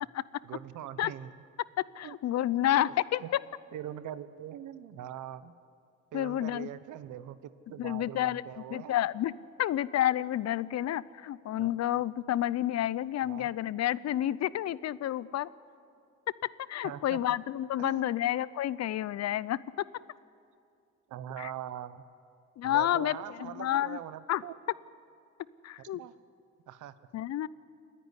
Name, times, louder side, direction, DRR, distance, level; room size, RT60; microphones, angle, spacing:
voice 1, 0.4-1.3 2.0-2.2 2.8-2.9 3.2-3.3 3.7-5.5 6.1-9.0 11.6-11.7 13.2-13.5 16.8-17.4 17.8-18.1 21.1-22.0 22.6-24.5 25.8-26.1 26.7-26.9, right 11 dB, 80° right, 14 dB, 0.9 m, -42 dB
voice 2, 2.0-3.2 6.1-6.7 7.8-8.4 8.7-9.3 9.6-15.5 16.7-19.6 21.4-21.5 22.6-24.0 24.3-24.4 25.6-26.0 27.1-27.5, left 12 dB, 60° left, 20 dB, 0.6 m, -30 dB
28.0 x 10.0 x 9.8 m, 2.4 s
cardioid pair, 90°, 30 cm